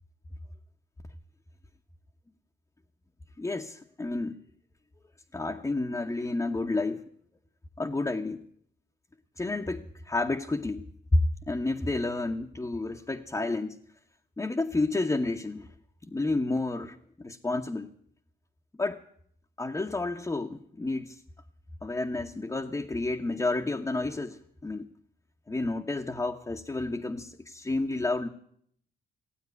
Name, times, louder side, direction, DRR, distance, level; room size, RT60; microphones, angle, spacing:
voice 1, 3.4-4.4 5.3-7.0 7.8-8.4 9.4-10.9 11.1-11.2 11.5-13.8 14.4-15.7 16.0-17.9 18.8-19.0 19.6-21.2 21.8-24.9 25.5-28.3, left 2 dB, 15° left, 1 dB, 1.0 m, -30 dB
16.0 x 8.8 x 9.5 m, 0.66 s
cardioid pair, 90°, 20 cm